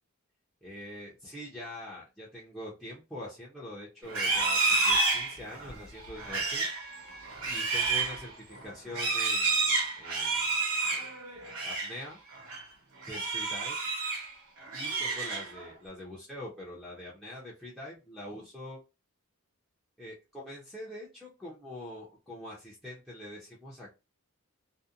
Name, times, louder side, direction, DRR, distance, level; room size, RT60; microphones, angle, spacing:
voice 1, 0.6-6.7 7.4-10.7 11.6-12.2 13.1-13.8 14.7-18.8 20.0-23.9, left 1 dB, ahead, -7 dB, 0.6 m, -44 dB
Livestock farm animals working animals, 4.0-12.0 12.3-12.6 13.0-14.3 14.6-15.7, right 3 dB, 90° right, 1.1 m, -30 dB
2.7 x 2.1 x 2.4 m, 0.27 s
head